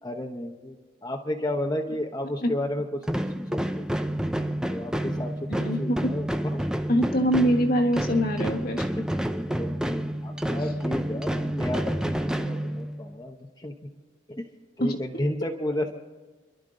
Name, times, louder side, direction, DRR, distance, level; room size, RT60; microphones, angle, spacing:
voice 1, 0.0-3.9 4.7-6.7 9.0-9.1 9.5-13.7 14.3-14.4 14.8-15.9, left 1 dB, 20° left, 1 dB, 0.9 m, -33 dB
sound 1, 3.0-13.2, equal, 5° right, 0.5 m, -29 dB
voice 2, 5.5-6.0 6.9-8.8 14.8-15.0, equal, 50° left, 2 dB, 1.5 m, -24 dB
30.0 x 12.0 x 3.9 m, 1.3 s
head